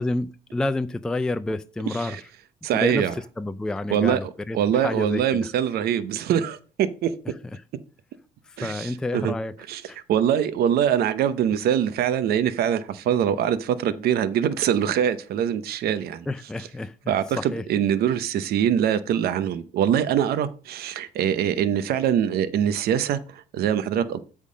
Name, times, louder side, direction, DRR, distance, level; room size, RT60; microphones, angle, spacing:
voice 1, 0.0-2.2 2.7-3.1 3.4-5.5 7.5-7.6 8.5-9.5 9.9-10.0 16.3-17.6, left 2 dB, 5° left, 0.3 m, -29 dB
voice 2, 2.6-3.1 3.9-4.2 4.5-7.1 8.6-9.3 9.7-9.8 10.1-16.3 17.1-24.2, right 9 dB, 65° right, 0.7 m, -23 dB
8.3 x 3.7 x 6.3 m
cardioid pair, 110°, 17 cm